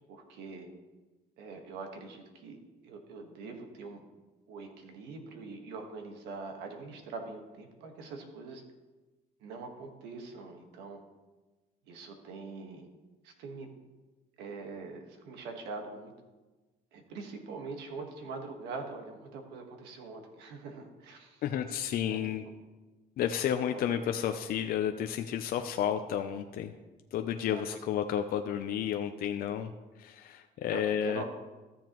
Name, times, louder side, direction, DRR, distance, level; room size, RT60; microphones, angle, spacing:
voice 1, 0.1-0.7 1.4-4.0 4.5-8.6 9.4-11.0 11.9-12.9 13.2-13.7 14.4-16.1 16.9-21.4 22.0-22.4 23.7-24.0 27.4-27.6 30.7-31.3, right 4 dB, 90° right, 4 dB, 1.5 m, -43 dB
voice 2, 21.4-22.4 23.2-26.7 27.1-29.7 30.0-31.2, left 9 dB, 60° left, 6 dB, 0.6 m, -31 dB
13.5 x 7.2 x 3.0 m, 1.2 s
cardioid pair, 110°, 17 cm